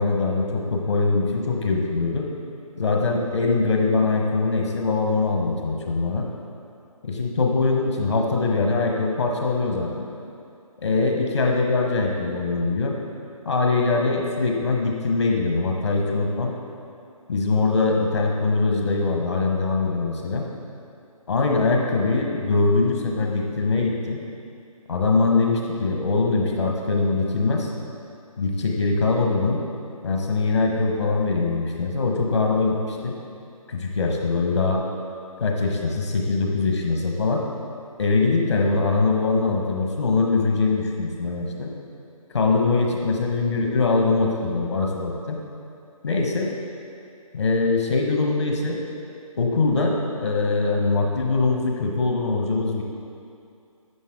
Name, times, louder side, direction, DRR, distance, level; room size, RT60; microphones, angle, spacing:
voice 1, 0.0-2.3 2.8-6.3 7.0-10.1 10.8-13.0 13.4-16.5 17.3-20.4 21.3-24.2 24.9-27.7 28.4-29.6 30.0-33.1 33.7-34.8 35.4-37.4 38.0-41.7 42.3-45.4 46.0-46.5 47.3-48.8 49.4-52.8, left 3 dB, 50° left, 1 dB, 1.1 m, -22 dB
11.0 x 7.3 x 3.7 m, 2.5 s
figure-of-eight pair, 150°, 19 cm